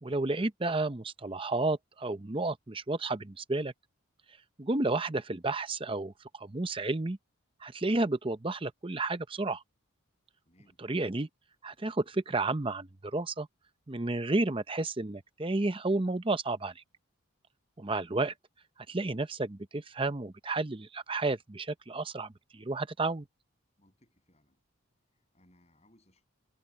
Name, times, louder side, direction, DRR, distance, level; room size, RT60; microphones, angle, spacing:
voice 1, 0.0-3.7 4.6-7.2 7.6-9.6 10.8-11.3 11.6-13.5 13.9-16.8 17.8-18.3 18.9-23.3, right 2 dB, 25° right, 0.7 m, -31 dB
voice 2, 10.4-10.8 23.8-24.6 25.1-26.3, left 1 dB, 30° left, 7.7 m, -66 dB
head